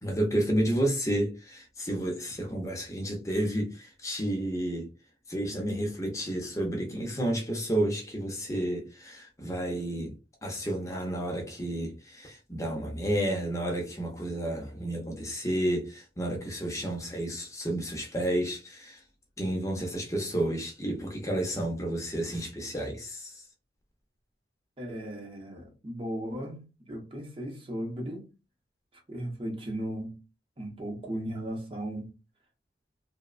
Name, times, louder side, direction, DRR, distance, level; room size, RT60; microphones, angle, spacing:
voice 1, 0.0-4.9 5.3-10.1 10.4-19.0 19.4-23.3, right 1 dB, 15° left, 0.5 m, -31 dB
voice 2, 24.8-28.3 29.1-30.2 30.6-32.1, equal, 30° right, 0.6 m, -36 dB
2.9 x 2.0 x 2.4 m
head